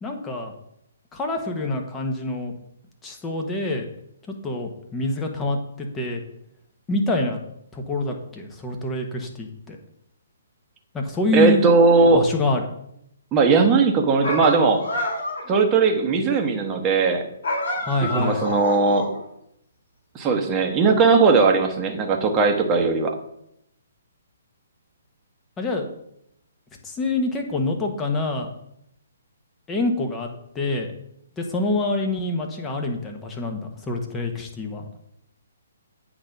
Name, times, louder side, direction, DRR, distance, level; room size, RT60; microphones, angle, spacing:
voice 1, 0.0-0.5 1.1-2.5 3.0-3.9 4.4-6.2 6.9-7.4 7.7-9.8 10.9-11.6 12.1-12.6 17.8-18.5 25.6-25.9 26.8-28.5 29.7-30.3 30.5-30.9 31.4-33.6 33.9-34.9, left 2 dB, 15° left, 2 dB, 1.3 m, -26 dB
voice 2, 11.3-12.2 13.3-14.8 15.5-17.2 18.0-19.1 20.1-23.1, right 4 dB, 20° right, 3 dB, 1.1 m, -18 dB
sound 1, 14.2-15.5 17.4-19.2, left 1 dB, 60° left, 2.9 m, -28 dB
8.6 x 3.9 x 5.8 m, 0.76 s
figure-of-eight pair, 135°, 0 cm